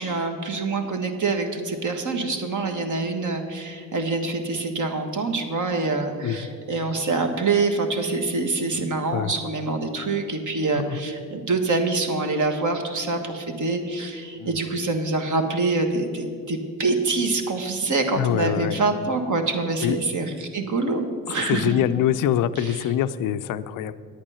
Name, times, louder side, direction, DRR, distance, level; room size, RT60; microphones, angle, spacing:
voice 1, 0.0-21.7 22.5-22.8, right 3 dB, 35° right, 5 dB, 1.5 m, -25 dB
voice 2, 18.2-18.8 19.8-20.0 21.5-23.9, left 11 dB, 40° left, 12 dB, 0.5 m, -24 dB
9.8 x 8.7 x 5.6 m, 2.3 s
hypercardioid pair, 65°, 50 cm